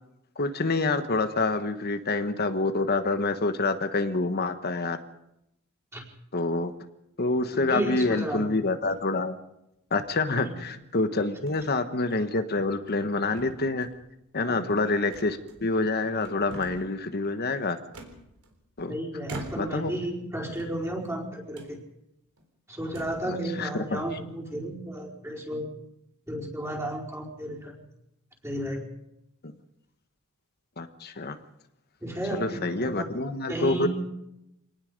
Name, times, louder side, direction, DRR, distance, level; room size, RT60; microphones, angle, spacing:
voice 1, 0.4-5.0 6.3-6.7 7.2-9.4 9.9-13.9 14.3-17.8 18.8-18.9 19.6-19.9 23.3-24.0 29.4-29.5 30.8-31.4 32.3-33.9, left 3 dB, 45° left, 9 dB, 1.3 m, -27 dB
voice 2, 7.5-8.4 10.3-10.5 14.4-14.7 18.9-21.8 22.7-25.7 26.3-27.8 28.4-28.9 32.0-33.1 33.5-33.9, right 1 dB, 15° right, -2 dB, 4.8 m, -33 dB
sound 1, 8.8-9.2 10.0-10.7 11.5-11.7 12.1-12.2 12.7-13.1 13.4-14.1 15.1-15.9 16.2-17.0 17.9-18.8 19.2-19.9 20.5-21.2 21.5-21.7 22.4-22.5 22.8-23.3, right 1 dB, 80° right, 3.9 m, -44 dB
26.0 x 19.0 x 5.3 m, 0.84 s
head